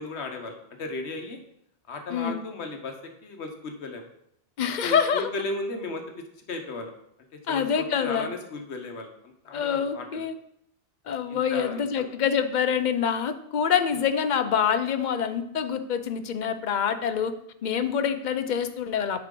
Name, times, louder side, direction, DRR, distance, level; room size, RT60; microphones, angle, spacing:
voice 1, 0.0-1.4 1.9-2.9 3.2-4.0 4.8-6.0 6.5-6.9 7.5-10.2 11.3-12.0, left 2 dB, 80° left, 5 dB, 1.2 m, -35 dB
voice 2, 2.1-2.4 4.6-5.3 7.5-8.3 9.5-10.3 11.1-17.3 17.6-19.3, left 7 dB, 55° left, 10 dB, 0.6 m, -26 dB
9.5 x 4.5 x 3.7 m, 0.75 s
omnidirectional pair, 1.1 m